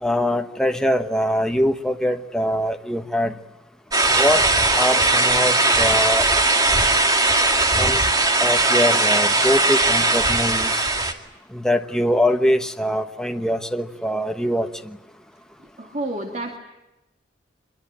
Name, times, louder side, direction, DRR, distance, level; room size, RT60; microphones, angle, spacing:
voice 1, 0.0-3.3 4.1-4.5 4.8-6.3 7.8-8.0 8.4-10.9 11.5-15.0, equal, 5° left, 6 dB, 1.1 m, -23 dB
sound 1, 3.9-11.1, right 2 dB, 20° right, 2.3 m, -19 dB
voice 2, 15.8-16.6, right 1 dB, 40° right, 3 dB, 2.4 m, -29 dB
25.0 x 23.0 x 8.8 m, 0.99 s
head